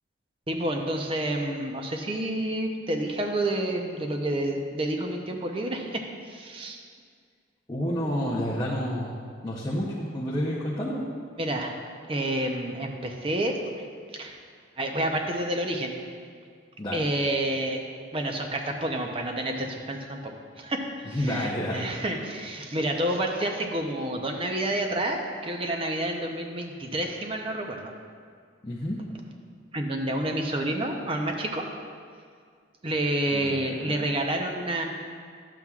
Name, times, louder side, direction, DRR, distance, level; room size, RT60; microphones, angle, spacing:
voice 1, 0.5-6.8 11.4-11.8 12.1-13.6 14.1-14.4 14.8-15.9 16.9-17.8 18.1-27.9 29.7-31.6 32.8-34.8, right 1 dB, 30° right, 3 dB, 0.6 m, -29 dB
voice 2, 7.7-9.1 9.4-11.1 16.8-17.1 21.1-21.9 28.6-29.0 33.3-33.9, equal, 20° left, -6 dB, 0.7 m, -29 dB
11.0 x 7.3 x 2.4 m, 2.1 s
head